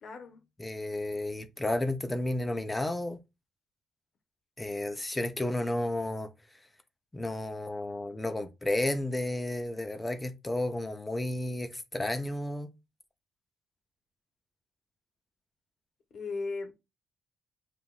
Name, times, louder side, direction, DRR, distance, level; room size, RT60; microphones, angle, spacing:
voice 1, 0.0-0.4 16.1-16.7, left 3 dB, 60° left, 1.0 m, -36 dB
voice 2, 0.6-3.2 4.6-6.3 7.1-12.7, left 1 dB, 15° left, 0.7 m, -32 dB
6.9 x 2.5 x 2.4 m
cardioid pair, 90°, 0 cm